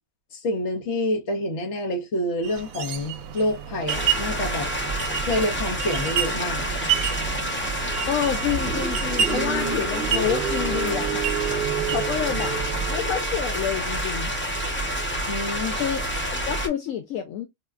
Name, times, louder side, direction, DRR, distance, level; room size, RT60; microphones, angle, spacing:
voice 1, 0.3-4.7 5.2-6.7 15.3-15.8, left 1 dB, 55° left, 1.2 m, -27 dB
sound 1, 2.4-12.9, right 8 dB, 75° right, 1.0 m, -31 dB
sound 2, 3.9-16.7, right 1 dB, 20° left, 0.3 m, -28 dB
voice 2, 8.1-11.3 11.9-12.6 12.9-14.3 15.8-16.0 16.5-17.5, left 9 dB, 75° left, 0.9 m, -28 dB
Car, 8.1-13.5, right 7 dB, 45° right, 0.7 m, -31 dB
4.7 x 2.2 x 2.3 m
omnidirectional pair, 1.5 m